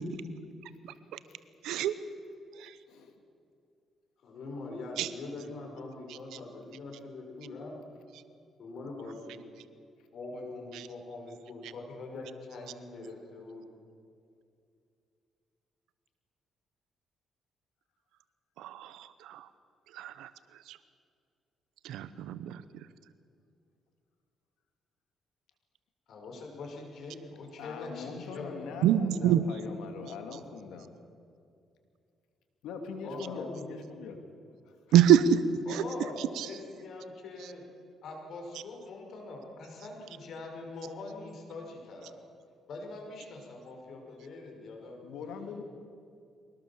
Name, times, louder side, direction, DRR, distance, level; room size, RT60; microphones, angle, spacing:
voice 1, 1.6-2.0 2.6-2.7 5.0-5.1 10.7-10.8 18.6-19.5 19.9-20.3 20.7-20.8 21.8-22.9 28.8-29.4 34.9-35.4 35.7-35.8 36.2-36.5, right 10 dB, 90° right, 13 dB, 0.9 m, -26 dB
voice 2, 4.2-7.8 8.6-9.4 10.1-13.7 26.1-28.8 33.0-33.7 35.7-37.7 38.0-42.2 42.7-45.0, left 3 dB, 65° left, 1 dB, 5.7 m, -43 dB
voice 3, 27.6-30.9 32.6-34.2 34.6-34.7 45.0-45.6, left 5 dB, 85° left, 5 dB, 2.8 m, -42 dB
23.5 x 19.0 x 7.3 m, 2.5 s
cardioid pair, 90°, 0 cm